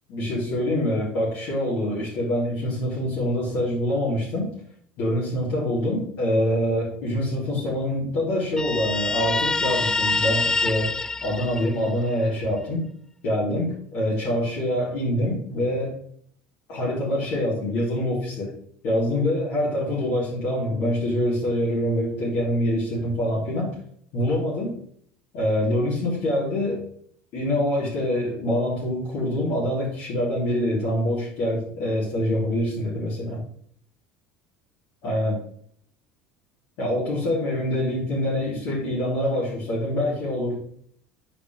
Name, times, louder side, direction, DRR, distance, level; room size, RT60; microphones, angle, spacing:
voice 1, 0.1-4.5 5.0-10.9 11.2-12.9 13.2-16.0 16.7-18.6 18.8-23.8 24.1-24.8 25.3-26.8 27.3-33.4 35.0-35.4 36.8-40.6, left 1 dB, 65° left, -7 dB, 3.7 m, -25 dB
Guitar, 8.6-12.1, left 3 dB, 15° left, 0.3 m, -25 dB
9.6 x 5.1 x 3.6 m, 0.62 s
supercardioid pair, 95°, 4 cm